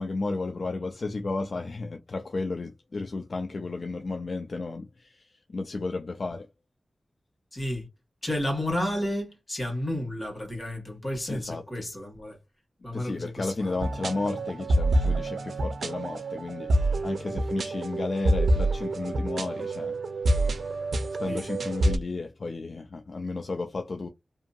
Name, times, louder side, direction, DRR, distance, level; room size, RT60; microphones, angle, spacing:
voice 1, 0.0-6.5 11.3-11.6 12.9-16.7 17.0-20.0 21.2-24.1, left 3 dB, 50° left, 0.3 m, -33 dB
voice 2, 7.5-7.9 8.2-12.4 12.8-13.9 21.3-21.5, left 1 dB, 25° left, 1.5 m, -32 dB
sound 1, 13.8-22.0, right 1 dB, 85° right, 0.5 m, -27 dB
2.7 x 2.6 x 2.3 m
wide cardioid pair, 120°, 0 cm